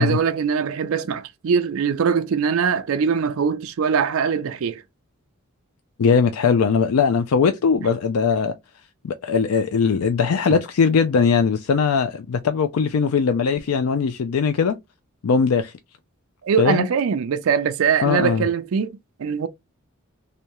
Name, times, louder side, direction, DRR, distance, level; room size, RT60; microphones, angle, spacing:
voice 1, 0.0-4.8 10.5-10.6 16.4-19.5, right 6 dB, 70° right, 0.4 m, -22 dB
voice 2, 6.0-8.5 9.0-14.7 15.2-15.7 16.6-16.9 18.0-18.5, left 5 dB, 90° left, 0.4 m, -20 dB
3.3 x 2.7 x 2.9 m
head